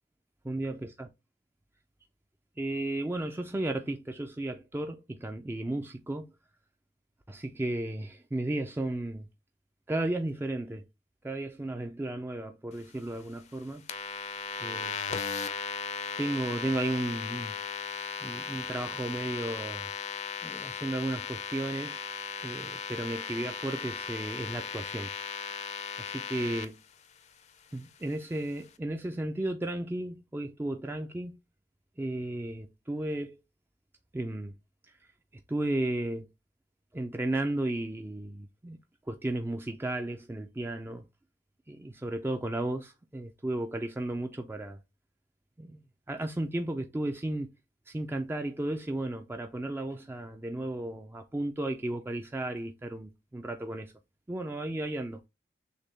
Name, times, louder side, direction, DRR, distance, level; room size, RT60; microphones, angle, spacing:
voice 1, 0.5-1.1 2.6-6.3 7.3-9.3 9.9-10.8 11.2-13.8 14.6-15.0 16.2-17.6 18.2-19.9 20.4-22.0 22.4-25.1 26.0-26.8 27.7-31.4 32.0-33.4 34.1-34.5 35.0-35.1 35.5-36.3 36.9-38.8 39.1-41.0 41.7-44.8 45.6-45.8 46.1-47.5 47.9-53.9 54.3-55.2, right 1 dB, 15° right, 0.3 m, -34 dB
sound 1, 13.9-26.7, left 6 dB, 40° left, 0.5 m, -37 dB
6.4 x 2.2 x 3.3 m
head